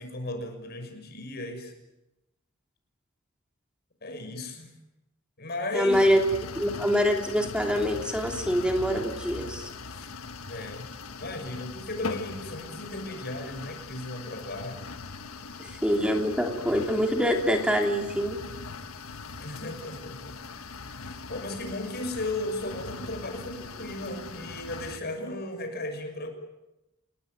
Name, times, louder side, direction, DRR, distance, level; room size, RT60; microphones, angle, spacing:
voice 1, 0.0-1.7 4.0-4.7 5.4-6.0 9.8-10.1 10.5-10.9 11.2-14.8 19.4-20.4 20.9-26.3, left 2 dB, 50° left, 5 dB, 6.3 m, -36 dB
voice 2, 5.7-6.2 6.5-9.7 15.6-18.4, equal, 5° right, 3 dB, 3.1 m, -25 dB
sound 1, 5.9-25.0, left 4 dB, 85° left, 1.6 m, -40 dB
29.5 x 18.5 x 9.3 m, 0.97 s
head